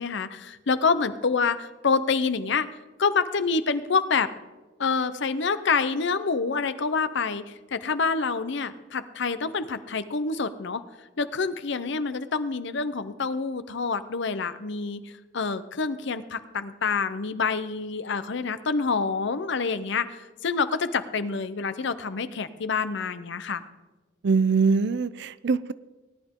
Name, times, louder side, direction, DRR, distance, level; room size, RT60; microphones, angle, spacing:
voice 1, 0.0-2.7 3.0-4.3 4.8-10.8 11.2-23.6, left 4 dB, 65° left, 12 dB, 0.7 m, -27 dB
voice 2, 24.2-25.7, right 4 dB, 60° right, 17 dB, 0.4 m, -23 dB
18.0 x 11.0 x 3.7 m, 1.2 s
head